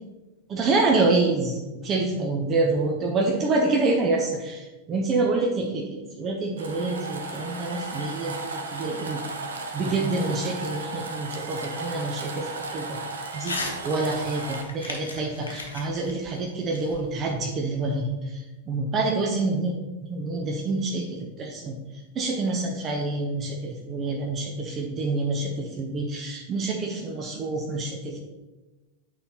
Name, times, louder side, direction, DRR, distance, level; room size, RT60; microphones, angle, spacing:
voice 1, 0.5-9.2 9.7-13.0 13.3-13.6 13.8-18.4 18.7-19.8 20.1-21.7 22.2-28.2, right 3 dB, 30° right, 1 dB, 0.8 m, -27 dB
sound 1, 6.6-14.6, right 3 dB, 65° right, 0.7 m, -35 dB
Crumpling crinkling / Tearing, 13.4-13.8 14.1-17.4, left 3 dB, 75° left, 0.9 m, -36 dB
8.8 x 4.0 x 2.9 m, 1.1 s
figure-of-eight pair, 90°, 0 cm